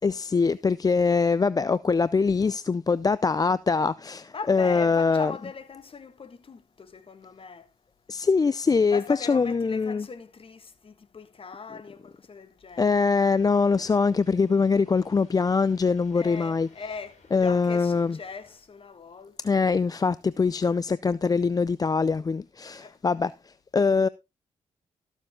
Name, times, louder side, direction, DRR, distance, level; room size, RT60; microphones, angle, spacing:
voice 1, 0.0-5.3 8.1-10.1 12.8-16.7 17.3-18.2 19.4-24.1, left 4 dB, 30° left, 0.5 m, -23 dB
voice 2, 4.3-7.7 8.9-13.0 16.1-19.5 22.7-23.0, left 5 dB, 45° left, 1.6 m, -40 dB
sound 1, 12.8-18.6, left 3 dB, 60° left, 4.8 m, -60 dB
13.5 x 7.2 x 3.6 m
supercardioid pair, 55°, 13 cm